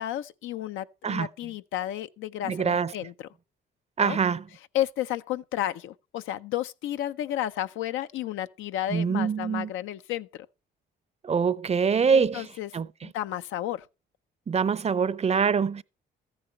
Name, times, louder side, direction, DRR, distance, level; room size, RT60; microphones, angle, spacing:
voice 1, 0.0-3.3 4.0-4.2 4.7-10.5 12.1-12.7 13.0-13.9, left 12 dB, 90° left, 0.6 m, -32 dB
voice 2, 2.4-2.9 4.0-4.4 8.9-9.7 11.2-12.4 12.7-12.9 14.5-15.8, right 6 dB, 35° right, 0.6 m, -24 dB
14.0 x 9.8 x 4.3 m
cardioid pair, 90°, 20 cm